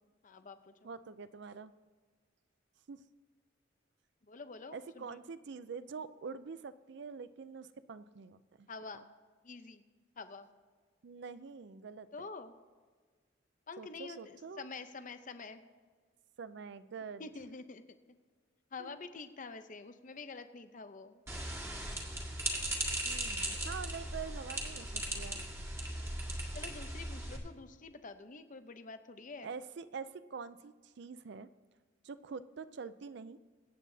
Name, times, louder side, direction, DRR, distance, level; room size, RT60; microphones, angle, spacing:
voice 1, 0.2-0.9 4.2-5.2 8.7-9.1 9.4-9.8 10.2-10.5 12.1-12.5 13.7-15.6 17.2-18.0 18.7-21.2 26.5-29.5, left 4 dB, 45° left, 9 dB, 0.7 m, -47 dB
voice 2, 0.8-1.7 2.9-3.0 4.7-8.7 11.0-12.3 13.8-14.7 16.4-17.2 18.8-18.9 23.1-25.4 29.4-31.5 32.0-33.4, right 5 dB, 60° right, 14 dB, 0.4 m, -45 dB
sound 1, 21.3-27.4, right 1 dB, 15° right, 1.7 m, -38 dB
24.5 x 8.3 x 2.7 m, 1.5 s
head